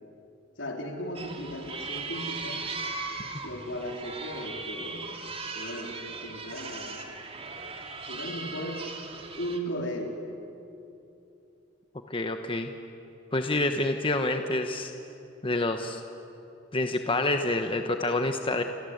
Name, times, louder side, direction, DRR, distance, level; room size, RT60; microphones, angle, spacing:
voice 1, 0.6-2.6 3.4-5.1 5.5-7.0 8.1-8.9 9.4-10.2, equal, 75° left, 2 dB, 4.1 m, -36 dB
sound 1, 1.2-9.6, right 4 dB, 30° right, 2.5 m, -38 dB
voice 2, 12.1-12.7 13.3-14.9 15.4-16.0 16.7-18.6, left 2 dB, 30° left, 6 dB, 1.2 m, -27 dB
29.5 x 24.5 x 8.1 m, 2.8 s
head